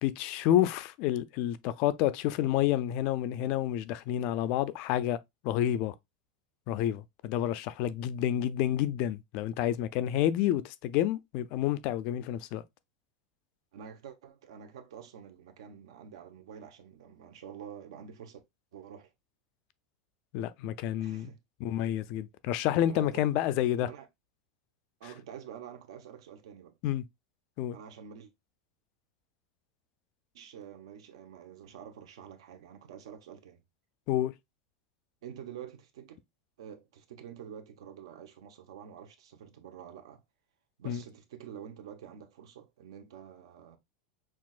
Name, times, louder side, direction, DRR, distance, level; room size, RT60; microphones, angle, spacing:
voice 1, 0.0-5.2 5.4-5.9 6.7-12.6 20.3-21.3 21.6-23.9 26.8-27.0 27.6-27.8 34.1-34.3 40.9-41.0, left 12 dB, 35° left, 0.3 m, -29 dB
voice 2, 13.7-18.4 18.7-19.1 21.0-21.4 22.9-23.5 23.8-24.1 25.0-26.8 27.7-28.3 30.3-33.6 35.2-36.2 36.6-40.2 40.8-43.8, right 8 dB, 85° right, 1.0 m, -48 dB
6.0 x 2.4 x 2.4 m
supercardioid pair, 180°, 3 cm